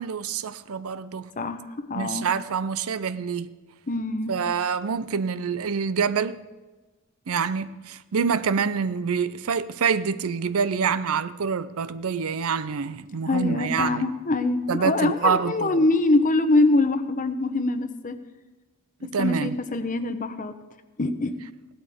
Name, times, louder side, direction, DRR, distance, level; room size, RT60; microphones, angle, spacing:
voice 1, 0.0-1.3 1.9-3.5 4.3-6.4 7.3-14.0 14.7-15.8 19.0-19.6, right 6 dB, 80° right, 0.5 m, -26 dB
voice 2, 1.4-2.3 3.9-4.4 13.2-18.2 19.2-20.5 21.0-21.4, left 2 dB, 35° left, 0.8 m, -24 dB
16.5 x 12.0 x 3.5 m
head